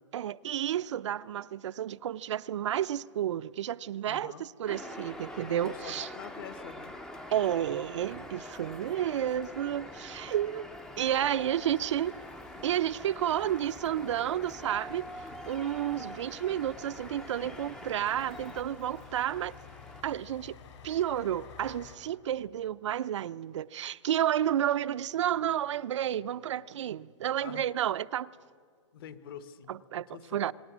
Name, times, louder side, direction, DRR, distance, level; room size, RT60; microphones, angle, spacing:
voice 1, 0.1-6.1 7.3-10.7 11.0-12.1 12.6-15.1 15.4-19.5 20.0-20.6 20.8-28.3 29.7-30.1 30.3-30.5, right 11 dB, 70° right, 0.5 m, -31 dB
voice 2, 4.1-4.4 5.6-7.0 27.4-27.7 28.9-30.5, left 8 dB, 45° left, 1.1 m, -46 dB
sound 1, 4.7-20.0, left 1 dB, 5° left, 0.5 m, -45 dB
sound 2, 11.1-22.0, left 7 dB, 70° left, 5.2 m, -53 dB
25.5 x 20.0 x 6.1 m
hypercardioid pair, 165°, 16 cm